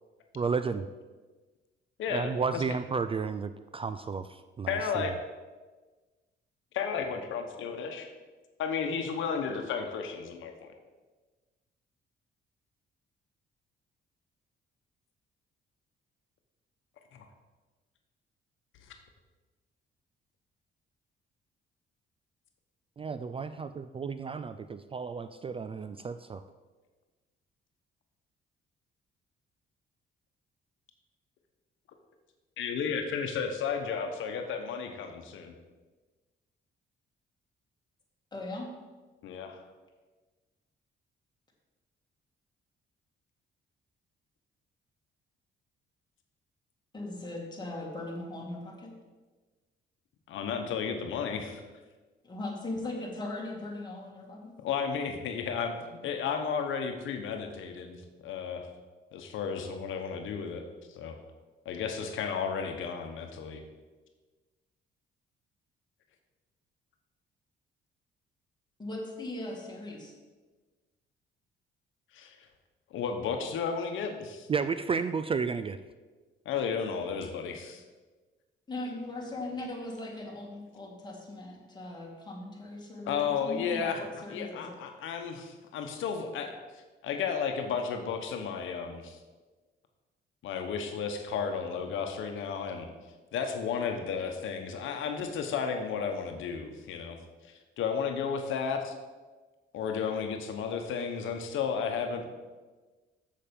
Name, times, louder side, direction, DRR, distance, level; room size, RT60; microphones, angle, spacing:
voice 1, 0.3-0.9 2.1-5.0 23.0-26.4 74.5-75.8, right 5 dB, 30° right, 11 dB, 0.3 m, -32 dB
voice 2, 2.0-2.6 4.7-5.1 6.7-8.1 8.6-10.7 17.1-17.3 18.8-18.9 32.6-35.5 39.2-39.6 50.3-51.6 54.6-58.0 58.2-58.7 59.1-60.6 60.9-61.2 61.6-63.6 72.1-72.5 72.9-74.5 76.4-77.8 83.1-89.2 90.4-92.9 93.3-97.2 97.4-98.9 99.7-102.3, left 6 dB, 80° left, 5 dB, 1.0 m, -33 dB
voice 3, 38.3-38.7 46.9-48.9 52.2-54.5 68.8-70.1 78.7-84.8, left 2 dB, 20° left, -2 dB, 2.4 m, -39 dB
7.2 x 6.7 x 5.2 m, 1.3 s
cardioid pair, 90°, 20 cm